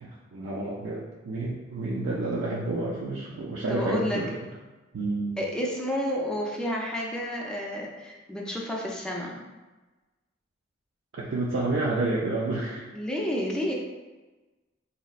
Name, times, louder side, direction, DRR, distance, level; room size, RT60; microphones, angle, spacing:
voice 1, 0.0-4.4 4.9-5.4 11.2-12.9, right 2 dB, 75° right, -5 dB, 0.4 m, -29 dB
voice 2, 3.7-4.2 5.4-9.4 12.9-13.7, equal, 5° left, -2 dB, 0.4 m, -30 dB
3.9 x 2.1 x 2.3 m, 1.2 s
head